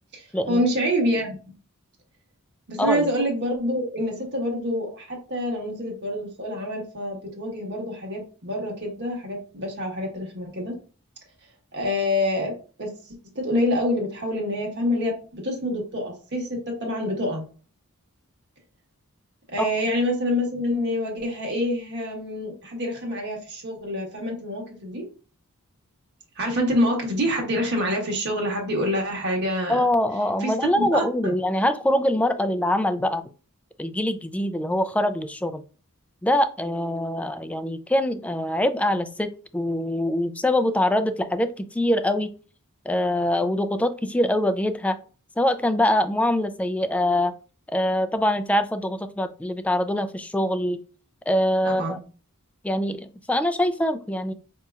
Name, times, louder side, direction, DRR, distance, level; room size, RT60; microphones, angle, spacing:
voice 1, 0.1-1.3 2.7-10.7 11.7-12.5 12.8-12.9 13.3-17.4 19.5-25.0 26.3-29.8 30.4-31.3 51.6-52.0, left 1 dB, 55° right, 0 dB, 1.3 m, -26 dB
voice 2, 29.7-33.2 33.8-35.6 36.2-42.3 42.9-45.0 45.4-47.3 47.7-50.8 51.3-52.0 52.6-54.3, left 1 dB, 5° left, 9 dB, 0.3 m, -24 dB
5.3 x 2.8 x 2.3 m, 0.37 s
head